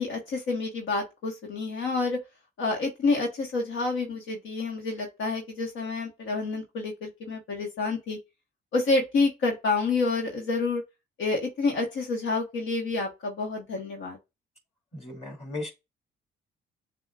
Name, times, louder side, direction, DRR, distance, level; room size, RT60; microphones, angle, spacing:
voice 1, 0.0-2.2 2.6-8.2 8.7-10.8 11.2-14.2, left 3 dB, 80° left, 1.2 m, -28 dB
voice 2, 14.9-15.7, left 2 dB, 30° left, 2.5 m, -36 dB
6.9 x 2.4 x 2.3 m
cardioid pair, 90°, 20 cm